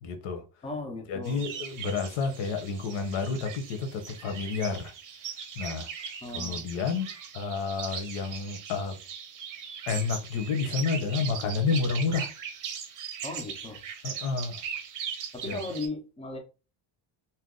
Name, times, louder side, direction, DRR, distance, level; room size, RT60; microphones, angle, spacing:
voice 1, 0.0-0.4 1.1-4.9 5.6-5.9 6.3-7.1 7.3-9.0 9.9-12.3 14.0-14.6 15.4-15.7, left 4 dB, 80° left, 1.0 m, -30 dB
voice 2, 0.6-1.5 6.2-6.7 13.2-13.8 15.3-16.4, left 2 dB, 15° left, 0.4 m, -37 dB
sound 1, 1.2-15.9, right 7 dB, 45° right, 0.6 m, -39 dB
2.8 x 2.2 x 3.6 m
cardioid pair, 180°, 46 cm